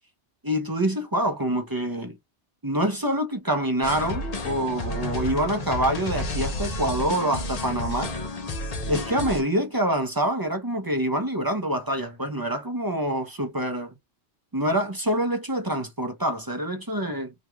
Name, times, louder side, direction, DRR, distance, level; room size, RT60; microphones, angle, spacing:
voice 1, 0.4-2.2 2.6-8.1 8.9-13.9 14.5-17.3, right 1 dB, 25° right, 0.6 m, -26 dB
sound 1, 3.8-9.4, left 2 dB, 45° left, 0.6 m, -31 dB
2.9 x 2.5 x 3.4 m
omnidirectional pair, 1.1 m